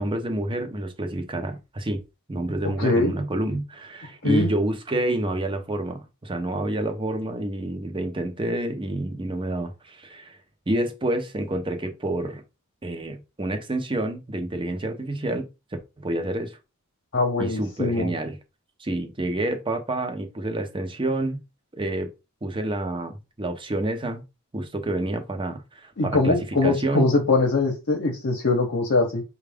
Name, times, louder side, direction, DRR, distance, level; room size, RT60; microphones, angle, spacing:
voice 1, 0.0-2.0 2.3-10.4 10.7-12.4 12.8-15.5 16.0-16.6 17.4-18.4 18.8-21.4 21.7-22.1 22.4-24.2 24.5-26.4 26.6-27.1, right 1 dB, 25° right, 0.7 m, -28 dB
voice 2, 2.8-3.1 4.2-4.5 17.1-18.1 26.0-29.2, left 3 dB, 55° left, 0.8 m, -22 dB
5.8 x 2.3 x 3.4 m
head